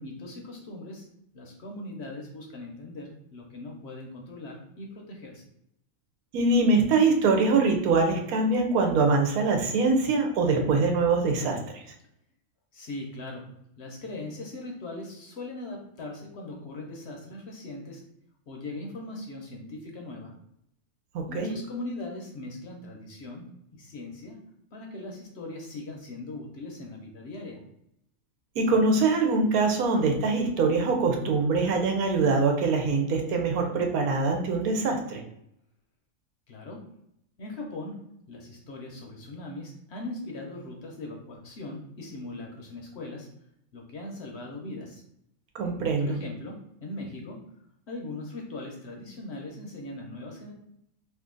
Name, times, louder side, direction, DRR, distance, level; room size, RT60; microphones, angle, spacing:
voice 1, 0.0-1.0 1.3-5.4 12.7-13.5 13.8-18.0 18.5-20.3 21.3-24.4 24.7-27.6 36.5-36.8 37.4-38.0 38.3-43.3 43.7-45.0 45.8-47.4 47.9-50.5, left 2 dB, 60° left, 1 dB, 0.8 m, -40 dB
voice 2, 6.3-11.8 21.1-21.5 28.6-35.2 45.5-46.2, right 3 dB, 90° right, 3 dB, 1.2 m, -23 dB
2.8 x 2.5 x 3.7 m, 0.76 s
omnidirectional pair, 1.5 m